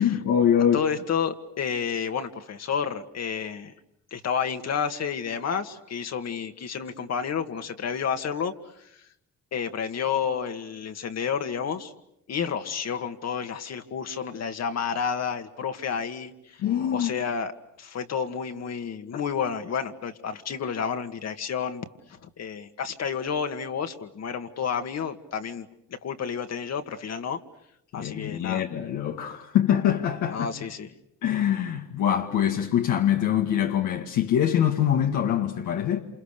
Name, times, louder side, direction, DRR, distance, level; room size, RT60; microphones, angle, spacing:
voice 1, 0.0-0.8 16.6-17.1 27.9-30.5 31.2-36.0, left 9 dB, 85° left, 2.0 m, -24 dB
voice 2, 0.7-3.7 4.1-9.1 9.5-11.9 12.3-16.6 16.9-17.5 17.8-27.4 27.9-28.6 30.3-30.9, left 7 dB, 60° left, 2.0 m, -30 dB
28.0 x 28.0 x 6.8 m
cardioid pair, 90°, 30 cm